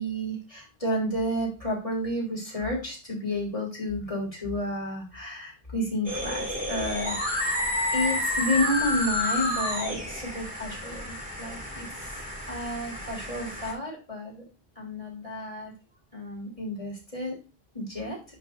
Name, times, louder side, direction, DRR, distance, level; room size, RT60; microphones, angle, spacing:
voice 1, 0.0-7.6 7.9-12.2 12.5-14.4 14.8-15.7 16.1-17.4 17.7-18.2, left 1 dB, 35° left, -2 dB, 3.7 m, -31 dB
sound 1, 6.1-13.7, left 1 dB, 10° right, 2.4 m, -30 dB
10.5 x 5.8 x 2.7 m, 0.31 s
omnidirectional pair, 1.0 m